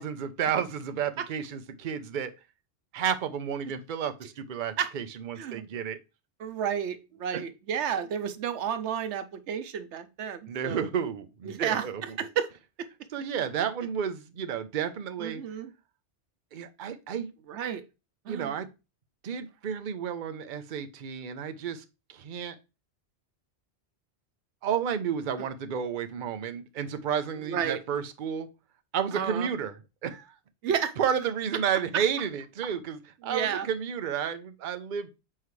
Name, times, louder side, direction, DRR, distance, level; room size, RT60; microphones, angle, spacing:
voice 1, 0.0-2.3 2.9-6.0 7.3-7.4 10.5-12.0 13.1-15.4 16.5-17.3 18.3-18.7 19.2-21.8 22.1-22.5 24.6-28.5 28.9-29.7 30.0-30.3 31.0-35.2, right 8 dB, 50° right, 9 dB, 0.8 m, -31 dB
voice 2, 6.4-10.9 11.4-12.5 12.8-12.9 15.2-15.7 17.5-17.8 18.2-18.6 25.4-25.5 27.5-27.8 29.1-29.5 30.6-30.9 31.9-32.0 33.2-33.7, right 8 dB, 90° right, 11 dB, 1.0 m, -31 dB
7.5 x 4.7 x 3.1 m, 0.28 s
omnidirectional pair, 1.1 m